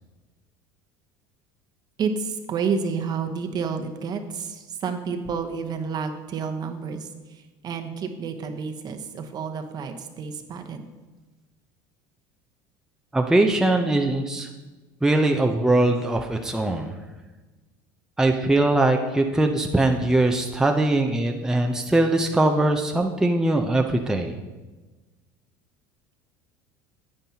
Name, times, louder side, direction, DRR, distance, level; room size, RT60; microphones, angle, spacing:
voice 1, 2.0-10.9, right 5 dB, 45° right, 6 dB, 1.0 m, -30 dB
voice 2, 13.1-14.5 15.0-16.9 18.2-24.3, right 2 dB, 5° right, 3 dB, 0.6 m, -21 dB
9.4 x 8.9 x 2.9 m, 1.2 s
supercardioid pair, 100°, 10 cm